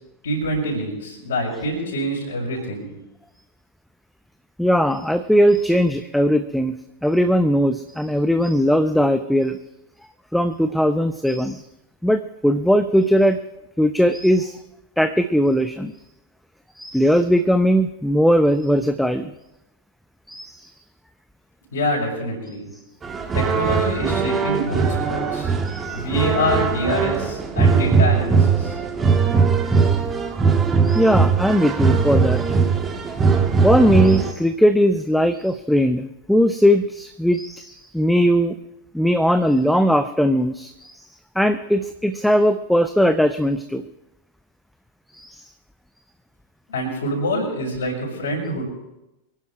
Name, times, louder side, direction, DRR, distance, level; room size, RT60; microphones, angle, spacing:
voice 1, 0.2-2.9 21.7-22.7 23.3-25.5 25.9-28.8 46.7-48.7, equal, 65° left, -3 dB, 5.8 m, -25 dB
voice 2, 4.6-6.7 7.0-9.6 10.3-11.6 12.0-13.4 13.8-14.6 15.0-15.9 16.7-19.3 20.3-20.7 25.6-26.0 29.7-29.9 30.8-32.5 33.6-38.6 38.9-41.1 41.4-43.9 45.1-45.4, equal, ahead, 10 dB, 0.7 m, -19 dB
sound 1, 23.0-34.3, right 5 dB, 20° right, 1.8 m, -20 dB
24.0 x 11.0 x 4.9 m, 0.94 s
figure-of-eight pair, 90°, 0 cm